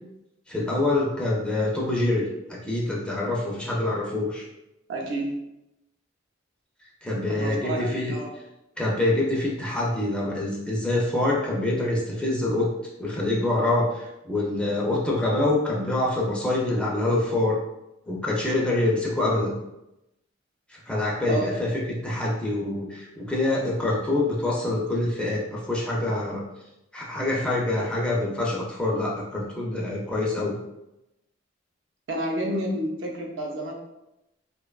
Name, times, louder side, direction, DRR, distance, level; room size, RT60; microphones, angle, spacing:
voice 1, 0.5-4.4 7.0-8.1 8.8-12.7 13.0-17.6 18.1-19.5 20.7-26.4 26.9-30.6, left 2 dB, 5° left, -4 dB, 0.4 m, -25 dB
voice 2, 4.9-5.4 7.3-8.3 21.2-21.5 32.1-33.7, right 1 dB, 70° right, 0 dB, 0.5 m, -29 dB
2.8 x 2.2 x 2.3 m, 0.89 s
head